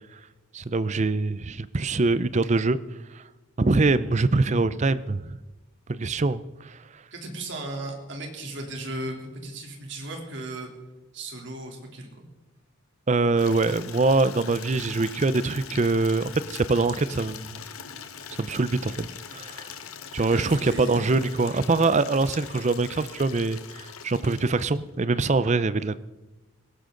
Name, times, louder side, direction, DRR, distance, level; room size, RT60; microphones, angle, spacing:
voice 1, 0.5-2.8 3.1-3.2 3.6-5.4 5.9-7.0 13.1-17.6 18.4-19.7 20.1-26.0, right 3 dB, 35° right, 16 dB, 0.5 m, -24 dB
voice 2, 7.1-10.7 11.1-12.3 20.3-21.1, right 1 dB, 55° right, 1 dB, 3.3 m, -36 dB
Water tap faucet / Liquid, 13.4-25.0, left 7 dB, 90° left, 1.2 m, -42 dB
19.5 x 17.0 x 3.9 m, 1.1 s
head